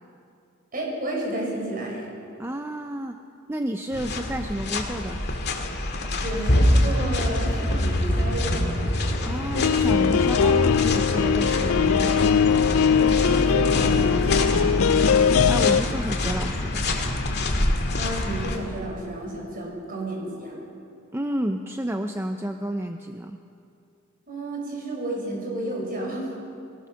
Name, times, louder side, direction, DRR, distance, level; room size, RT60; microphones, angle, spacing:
voice 1, 0.7-2.1 6.2-8.8 12.9-14.6 17.9-20.6 24.3-26.3, right 1 dB, 45° right, -2 dB, 6.0 m, -31 dB
voice 2, 2.4-3.2 3.5-5.2 9.3-12.2 15.5-16.9 21.1-23.4, right 1 dB, 10° right, 5 dB, 0.6 m, -30 dB
sound 1, 3.9-18.6, left 1 dB, 50° left, 2.1 m, -25 dB
sound 2, 9.5-15.8, left 7 dB, 75° left, 0.4 m, -21 dB
22.0 x 18.5 x 6.5 m, 2.5 s
head